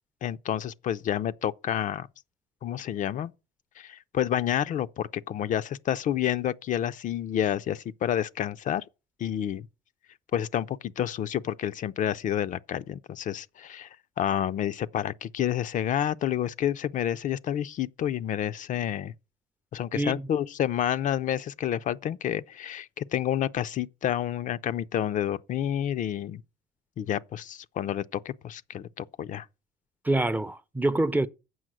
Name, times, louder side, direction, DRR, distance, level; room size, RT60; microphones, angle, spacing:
voice 1, 0.2-2.1 2.6-3.3 3.8-8.8 9.2-9.7 10.3-13.9 14.2-19.1 19.7-26.4 27.0-29.5, left 10 dB, 50° left, 0.4 m, -29 dB
voice 2, 19.9-20.3 30.0-31.3, right 2 dB, 10° right, 0.4 m, -26 dB
7.8 x 5.6 x 6.1 m
cardioid pair, 110°, 17 cm